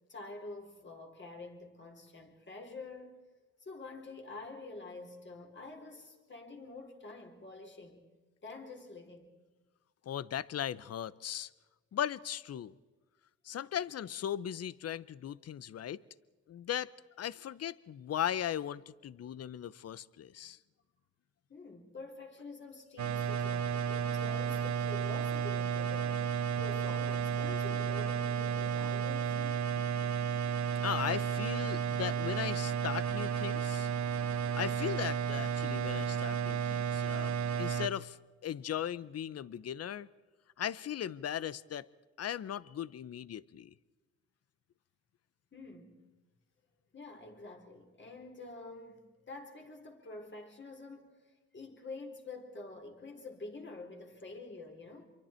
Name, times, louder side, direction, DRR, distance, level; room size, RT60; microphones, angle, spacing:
voice 1, 0.1-3.2 3.6-8.0 8.4-9.3 21.5-26.3 26.6-29.6 45.5-46.0 46.9-51.2 51.5-55.1, left 3 dB, 35° left, 4.0 m, -47 dB
voice 2, 10.1-11.5 11.9-12.7 13.4-16.0 16.5-16.9 17.2-20.6 30.8-33.9 34.5-38.2 38.4-40.1 40.6-41.9 42.2-43.7, left 10 dB, 55° left, 0.7 m, -38 dB
sound 1, 23.0-37.9, right 7 dB, 65° right, 1.5 m, -33 dB
26.5 x 23.5 x 4.5 m
cardioid pair, 85°, 31 cm